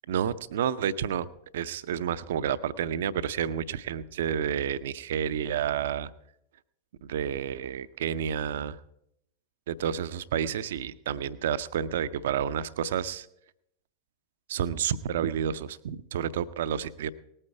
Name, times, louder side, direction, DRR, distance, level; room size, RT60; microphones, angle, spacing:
voice 1, 0.1-1.3 1.5-6.1 7.0-8.8 9.7-13.3 14.5-17.1, right 9 dB, 60° right, 17 dB, 0.5 m, -30 dB
18.5 x 8.9 x 4.7 m, 0.78 s
figure-of-eight pair, 90°, 0 cm